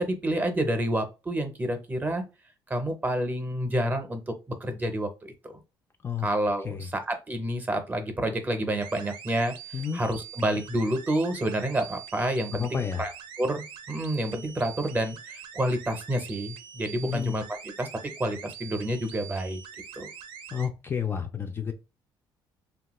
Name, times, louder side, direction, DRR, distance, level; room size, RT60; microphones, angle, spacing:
voice 1, 0.0-2.2 2.7-4.3 4.6-5.6 6.2-9.5 9.9-13.1 13.4-13.6 13.9-17.4 17.8-17.9 18.2-19.6 19.9-20.1, right 1 dB, 20° right, 0.6 m, -29 dB
sound 1, 8.8-20.7, right 8 dB, 80° right, 0.5 m, -44 dB
voice 2, 12.5-13.0 17.0-17.4 20.5-21.7, left 7 dB, 25° left, 0.3 m, -30 dB
2.8 x 2.3 x 3.0 m
cardioid pair, 110°, 9 cm